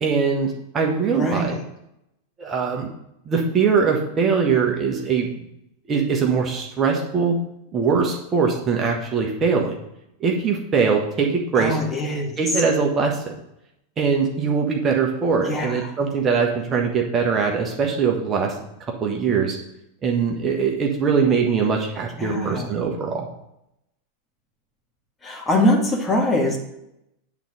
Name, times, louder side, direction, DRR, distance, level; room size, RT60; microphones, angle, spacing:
voice 1, 0.0-1.6 2.4-2.9 3.2-5.3 5.9-7.4 7.7-9.7 10.2-11.8 12.4-13.3 14.0-18.5 19.0-19.6 20.0-23.3, right 5 dB, 25° right, 0 dB, 1.3 m, -22 dB
voice 2, 1.2-1.6 11.6-12.3 15.4-15.7 22.2-22.7 25.2-26.6, left 1 dB, 15° left, 0 dB, 1.9 m, -22 dB
8.9 x 4.0 x 6.4 m, 0.83 s
figure-of-eight pair, 90°, 0 cm